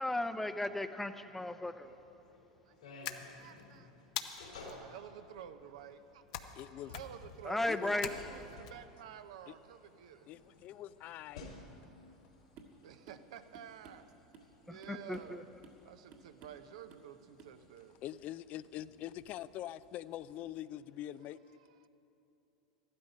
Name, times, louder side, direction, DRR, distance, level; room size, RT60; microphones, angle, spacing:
voice 1, 0.0-1.9 7.4-8.1 14.7-15.4, left 1 dB, 5° left, 10 dB, 0.6 m, -35 dB
sound 1, 1.8-20.5, left 3 dB, 85° left, 3.2 m, -57 dB
sound 2, 3.0-3.6 4.2-4.7 6.3-6.6 6.9-7.3 8.0-8.7, left 10 dB, 70° left, 0.8 m, -42 dB
voice 2, 3.0-4.1 4.6-10.3 12.8-14.1 14.6-15.5 15.8-18.0 21.8-21.9, right 9 dB, 70° right, 10 dB, 0.7 m, -51 dB
voice 3, 6.6-6.9 7.7-8.0 10.3-11.5 18.0-21.4, left 13 dB, 45° left, 16 dB, 0.3 m, -44 dB
sound 3, 12.6-12.8 13.1-13.3 13.5-14.5 14.8-15.4 15.6-15.8 16.1-16.6 16.9-17.1 17.4-17.6, right 4 dB, 55° right, 1.7 m, -56 dB
14.0 x 12.0 x 5.3 m, 2.9 s
hypercardioid pair, 90°, 4 cm